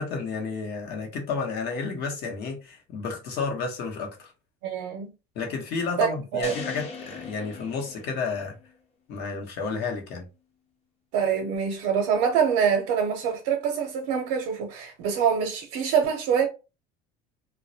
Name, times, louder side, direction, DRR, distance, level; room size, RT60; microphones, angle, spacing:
voice 1, 0.0-4.3 5.3-8.6 9.1-10.2, left 4 dB, 60° left, 0.9 m, -31 dB
voice 2, 4.6-5.1 6.0-6.5 11.1-16.5, right 7 dB, 80° right, 0.6 m, -25 dB
sound 1, 6.4-8.7, left 4 dB, 30° left, 0.7 m, -40 dB
2.2 x 2.1 x 2.7 m
cardioid pair, 120°, 19 cm